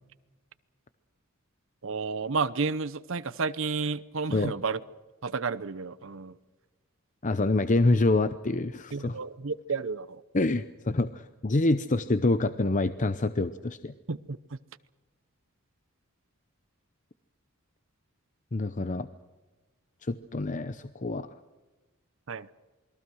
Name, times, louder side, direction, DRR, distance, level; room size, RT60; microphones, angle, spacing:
voice 1, 1.8-4.8 5.2-6.4 8.9-10.2 14.1-14.4 22.3-22.5, right 4 dB, 65° right, 15 dB, 0.8 m, -31 dB
voice 2, 7.2-9.2 10.3-13.9 18.5-19.1 20.0-21.3, left 2 dB, 35° left, 12 dB, 0.8 m, -26 dB
28.5 x 22.0 x 6.4 m, 1.2 s
head